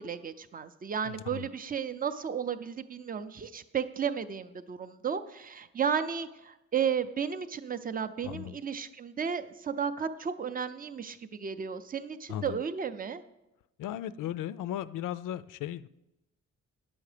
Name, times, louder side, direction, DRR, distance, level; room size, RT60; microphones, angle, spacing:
voice 1, 0.0-13.2, right 7 dB, 30° right, 10 dB, 0.4 m, -33 dB
voice 2, 1.0-1.5 8.2-8.6 12.3-12.6 13.8-15.9, left 11 dB, 90° left, 16 dB, 0.5 m, -36 dB
9.9 x 7.1 x 4.9 m, 0.95 s
wide cardioid pair, 160°, 31 cm